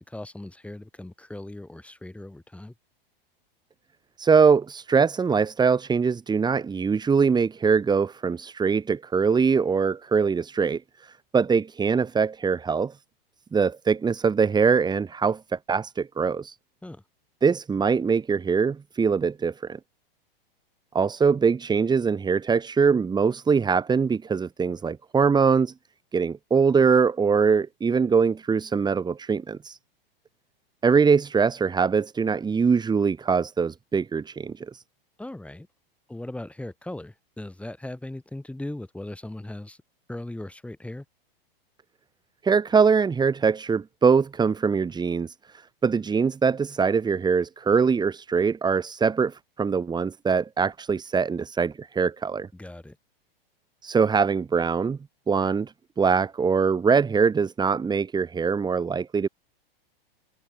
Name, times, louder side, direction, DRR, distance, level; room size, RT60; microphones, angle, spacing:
voice 1, 0.0-2.7 16.8-17.0 35.2-35.7 36.1-39.8 40.1-41.0 52.5-53.0, left 1 dB, 5° left, 5.0 m, -38 dB
voice 2, 4.2-12.9 13.5-16.6 17.4-19.8 20.9-25.7 26.1-29.8 30.8-34.8 42.4-52.5 53.8-55.0 55.3-59.3, right 5 dB, 15° right, 1.9 m, -23 dB
hypercardioid pair, 120°, 30 cm